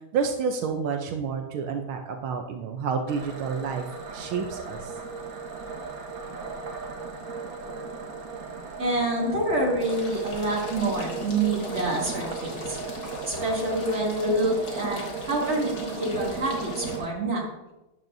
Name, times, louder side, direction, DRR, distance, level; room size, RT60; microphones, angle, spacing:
voice 1, 0.1-3.9 4.1-4.9, right 6 dB, 80° right, 4 dB, 1.6 m, -29 dB
sound 1, 3.1-17.1, right 4 dB, 50° right, 1.5 m, -36 dB
voice 2, 8.8-12.8 13.2-15.0 15.3-17.5, right 2 dB, 35° right, -4 dB, 2.8 m, -27 dB
sound 2, 9.8-17.0, left 2 dB, 50° left, 2.2 m, -40 dB
12.0 x 10.5 x 2.7 m, 0.99 s
omnidirectional pair, 2.2 m